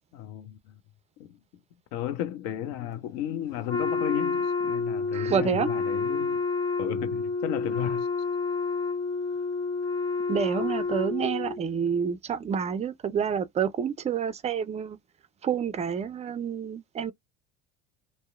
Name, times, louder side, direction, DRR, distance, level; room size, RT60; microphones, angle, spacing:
voice 1, 0.1-0.7 1.2-1.3 1.9-6.4 6.8-8.1, left 11 dB, 70° left, 0.7 m, -34 dB
Wind instrument woodwind instrument, 3.7-11.6, left 4 dB, 10° left, 0.8 m, -29 dB
voice 2, 5.1-5.7 10.3-15.0 15.4-17.1, right 7 dB, 20° right, 0.3 m, -28 dB
2.7 x 2.0 x 2.4 m
hypercardioid pair, 75°, 38 cm